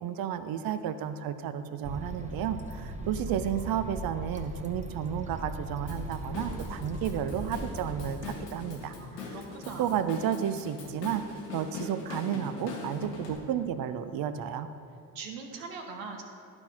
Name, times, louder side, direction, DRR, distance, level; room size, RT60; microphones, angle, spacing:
voice 1, 0.0-9.3 9.8-14.7, right 9 dB, 50° right, 11 dB, 0.6 m, -32 dB
sound 1, 1.8-8.2, right 1 dB, 15° right, 0.9 m, -39 dB
Drum kit / Drum, 5.9-13.4, left 4 dB, 90° left, 1.0 m, -41 dB
voice 2, 9.0-9.9 15.1-16.2, right 4 dB, 70° right, 3 dB, 1.1 m, -41 dB
11.5 x 4.4 x 4.2 m, 2.5 s
hypercardioid pair, 50°, 47 cm